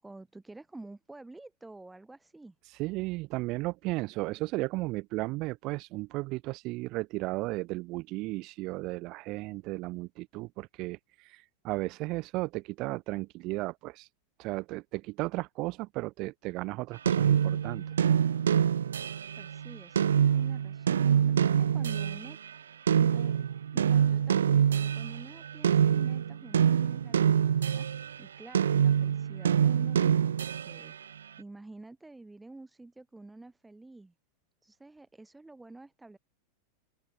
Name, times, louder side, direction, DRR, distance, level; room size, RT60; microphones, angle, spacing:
voice 1, 0.0-2.6 19.4-22.4 22.9-23.4 23.7-27.9 28.2-30.9 31.4-34.1 34.6-36.2, right 2 dB, 10° right, 7.8 m, -49 dB
voice 2, 2.8-14.1 14.4-17.8, right 21 dB, 45° right, 1.2 m, -35 dB
sound 1, 17.1-22.4 22.9-28.2 28.5-30.9, right 8 dB, 75° right, 0.3 m, -25 dB
open air
figure-of-eight pair, 90°, 0 cm